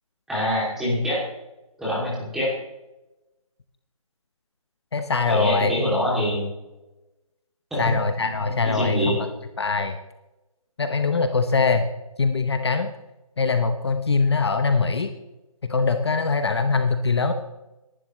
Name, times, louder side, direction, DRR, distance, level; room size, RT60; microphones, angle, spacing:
voice 1, 0.3-1.2 1.8-2.5 5.3-6.5 7.7-7.9 8.3-9.2, left 1 dB, ahead, -7 dB, 2.8 m, -25 dB
voice 2, 4.9-5.7 7.8-9.3 9.6-9.9 10.8-11.9 12.2-12.9 13.4-15.1 15.6-17.3, left 4 dB, 45° left, 7 dB, 1.0 m, -22 dB
21.0 x 11.5 x 3.2 m, 0.99 s
hypercardioid pair, 170°, 19 cm